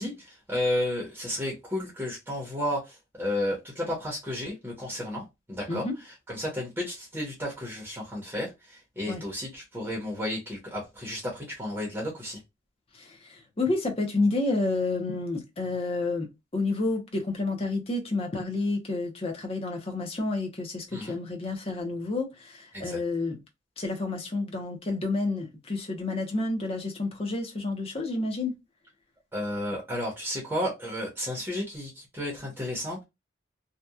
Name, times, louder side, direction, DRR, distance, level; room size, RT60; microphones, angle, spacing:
voice 1, 0.0-12.4 20.9-21.2 22.7-23.0 29.3-33.0, left 1 dB, 10° right, 0.8 m, -32 dB
voice 2, 12.9-23.4 23.8-28.6, left 2 dB, 30° left, 0.7 m, -30 dB
2.8 x 2.2 x 2.2 m
head